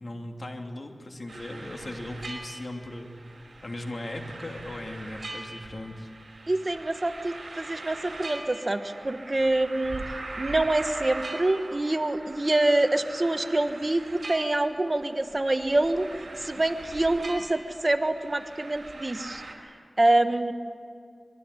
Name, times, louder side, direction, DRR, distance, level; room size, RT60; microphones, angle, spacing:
voice 1, 0.0-3.2 3.6-6.1, left 1 dB, 55° left, 3 dB, 3.0 m, -38 dB
sound 1, 1.3-19.5, right 2 dB, 65° right, 5.5 m, -41 dB
voice 2, 6.5-16.1 16.4-19.4 20.0-20.5, right 2 dB, 35° right, 8 dB, 1.4 m, -26 dB
25.0 x 22.5 x 9.8 m, 2.3 s
wide cardioid pair, 75°, 0 cm